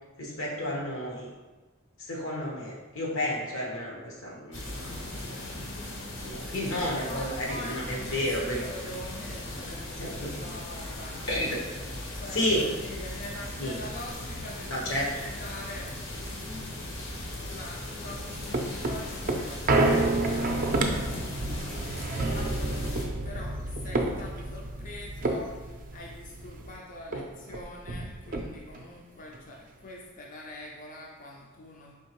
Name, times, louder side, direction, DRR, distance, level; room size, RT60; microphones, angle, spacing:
voice 1, 0.2-1.3 2.0-4.9 6.2-8.6 10.0-10.3 11.3-11.6 12.3-12.6 13.6-13.8 14.7-15.1 27.1-27.2, left 1 dB, 85° left, -2 dB, 1.1 m, -31 dB
sound 1, 4.5-23.1, left 1 dB, 65° left, 0.9 m, -38 dB
voice 2, 6.7-11.2 12.1-15.9 17.4-21.1 22.1-32.0, left 1 dB, 40° left, -1 dB, 0.4 m, -44 dB
sound 2, 18.0-26.8 27.1-27.2 27.5-28.9 29.3-29.4, right 2 dB, 45° right, 0.4 m, -29 dB
4.5 x 3.4 x 3.0 m, 1.2 s
head